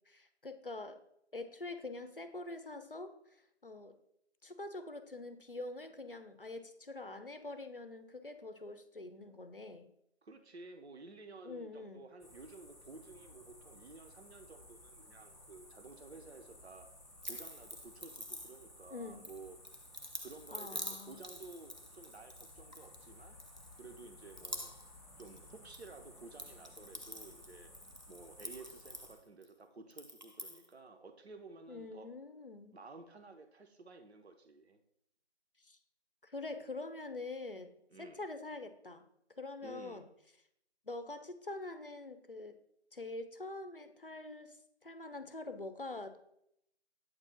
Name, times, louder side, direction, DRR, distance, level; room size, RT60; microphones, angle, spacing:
voice 1, 0.1-1.0 1.3-3.1 3.6-3.9 4.4-9.9 11.4-12.0 18.9-19.2 20.5-21.2 31.7-32.7 35.6-35.8 36.2-37.7 38.0-39.0 39.4-40.0 40.8-42.5 42.9-46.3, left 2 dB, 55° left, 9 dB, 0.6 m, -45 dB
voice 2, 10.2-16.9 17.2-19.6 20.2-23.4 23.8-24.7 25.2-27.7 28.1-32.1 32.7-34.8 37.9-38.2 39.6-40.0, right 3 dB, 70° right, 6 dB, 0.8 m, -53 dB
sound 1, 12.2-29.1, left 1 dB, ahead, 0.6 m, -57 dB
sound 2, 17.2-18.8 19.2-23.1 23.4-24.0 24.3-24.9 25.2-25.9 26.2-29.5 29.9-30.7, equal, 45° right, 0.4 m, -47 dB
8.0 x 2.7 x 5.6 m, 0.76 s
figure-of-eight pair, 180°, 34 cm